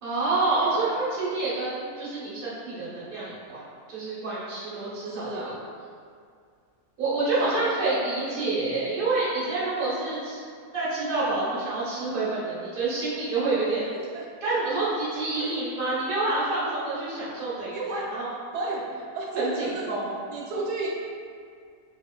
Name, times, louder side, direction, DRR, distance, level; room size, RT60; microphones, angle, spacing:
voice 1, 0.0-3.6 3.9-5.6 7.0-10.4 10.7-13.8 14.4-18.3 19.3-20.3, right 3 dB, 40° right, -9 dB, 1.0 m, -28 dB
voice 2, 5.2-5.6 7.4-7.8 8.1-8.2 14.1-14.3 15.4-15.5 17.7-18.1 18.5-18.8 19.1-19.9 20.3-20.9, right 3 dB, 85° right, -3 dB, 1.2 m, -32 dB
4.5 x 2.9 x 2.2 m, 2.2 s
omnidirectional pair, 1.7 m